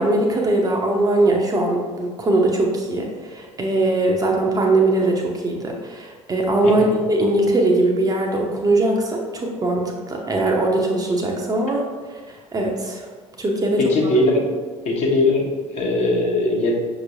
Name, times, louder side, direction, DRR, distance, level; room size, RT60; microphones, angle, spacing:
voice 1, 0.0-11.8 12.1-13.1 13.4-13.9, right 2 dB, 20° right, 0 dB, 0.7 m, -21 dB
voice 2, 13.8-14.5 14.8-16.7, left 2 dB, 40° left, -1 dB, 1.0 m, -20 dB
6.0 x 3.0 x 2.7 m, 1.5 s
figure-of-eight pair, 60°, 17 cm